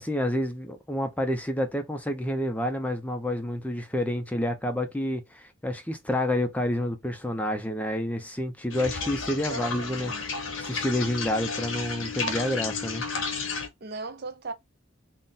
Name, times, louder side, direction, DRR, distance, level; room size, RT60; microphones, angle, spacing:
voice 1, 0.0-13.0, left 1 dB, 10° left, 0.4 m, -29 dB
sound 1, 8.7-13.7, left 4 dB, 85° left, 0.9 m, -32 dB
voice 2, 9.5-10.3 13.8-14.5, right 3 dB, 55° right, 0.6 m, -37 dB
4.0 x 2.1 x 3.6 m
head